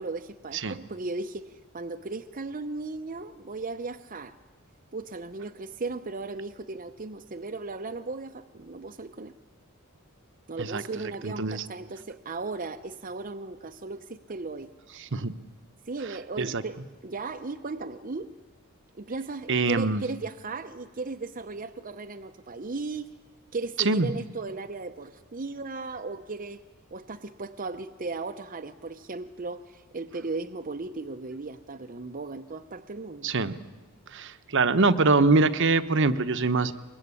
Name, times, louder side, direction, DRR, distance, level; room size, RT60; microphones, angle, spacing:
voice 1, 0.0-4.3 4.9-9.3 10.5-14.7 15.9-18.3 18.9-23.1 23.5-26.6 26.9-33.3, right 3 dB, 40° right, 6 dB, 0.8 m, -36 dB
voice 2, 11.2-11.6 15.1-15.3 16.4-16.6 19.5-20.0 23.8-24.1 33.2-33.6 34.1-36.7, right 3 dB, 60° right, 11 dB, 1.0 m, -23 dB
23.5 x 22.0 x 9.8 m, 1.2 s
head